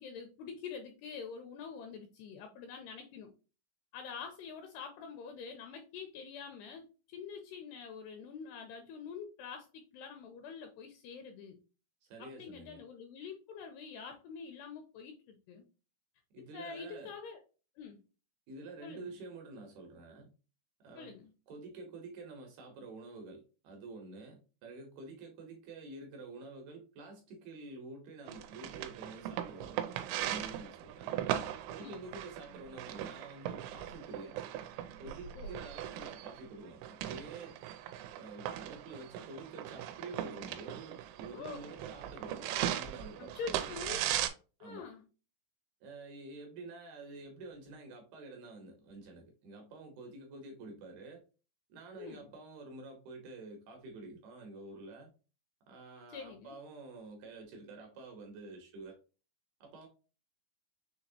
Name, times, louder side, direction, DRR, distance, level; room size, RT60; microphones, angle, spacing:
voice 1, 0.0-3.3 3.9-11.6 12.2-15.6 16.5-17.4 17.8-18.0 18.8-19.1 21.0-21.3 31.8-32.0 35.4-35.6 41.3-41.6 43.2-44.0 44.6-45.0 52.0-52.3 56.1-56.6, left 6 dB, 85° left, 2.4 m, -46 dB
voice 2, 12.1-12.8 16.3-17.1 18.5-20.3 20.8-21.2 21.5-29.8 30.1-31.1 31.7-34.4 35.0-37.6 38.1-43.7 44.6-44.9 45.8-51.2 51.7-55.1 55.7-59.0 59.6-59.9, right 3 dB, 75° right, 2.5 m, -49 dB
sound 1, 28.3-44.3, right 11 dB, 90° right, 3.0 m, -39 dB
6.8 x 2.9 x 2.7 m
omnidirectional pair, 5.2 m